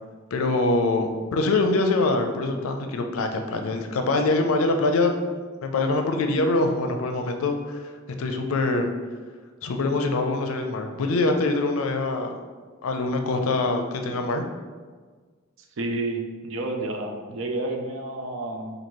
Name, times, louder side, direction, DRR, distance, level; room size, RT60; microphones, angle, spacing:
voice 1, 0.3-5.2 5.6-7.9 8.2-8.9 9.6-12.4 12.8-14.4, left 2 dB, 90° left, 5 dB, 0.4 m, -24 dB
voice 2, 15.8-18.7, right 2 dB, 70° right, 3 dB, 0.5 m, -30 dB
3.0 x 2.6 x 4.3 m, 1.5 s
head